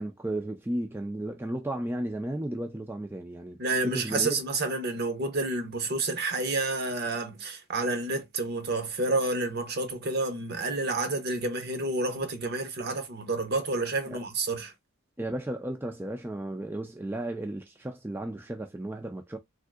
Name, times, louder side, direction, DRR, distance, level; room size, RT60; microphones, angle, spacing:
voice 1, 0.0-3.6 3.8-4.4 14.1-14.2 15.2-19.4, right 1 dB, 10° right, 0.4 m, -34 dB
voice 2, 3.6-14.7, right 2 dB, 55° right, 0.8 m, -29 dB
3.6 x 2.6 x 2.3 m
head